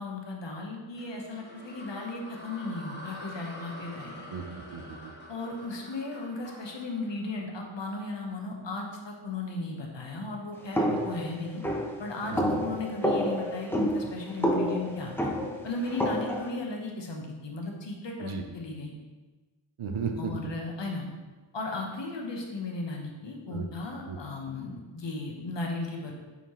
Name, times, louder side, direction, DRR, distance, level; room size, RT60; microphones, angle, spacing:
voice 1, 0.0-4.2 5.3-11.6 12.0-15.3 15.6-19.0 20.2-21.1 21.5-26.2, left 2 dB, 60° left, 0 dB, 1.1 m, -36 dB
sound 1, 1.0-8.1, equal, 20° left, 1.3 m, -46 dB
voice 2, 4.3-5.1 12.3-12.6 18.2-18.4 19.8-20.3 23.5-23.7 24.1-24.2, right 5 dB, 80° right, 4 dB, 0.8 m, -35 dB
sound 2, 10.7-16.5, equal, 5° left, 0.7 m, -29 dB
7.2 x 4.3 x 3.1 m, 1.3 s
wide cardioid pair, 110°, 49 cm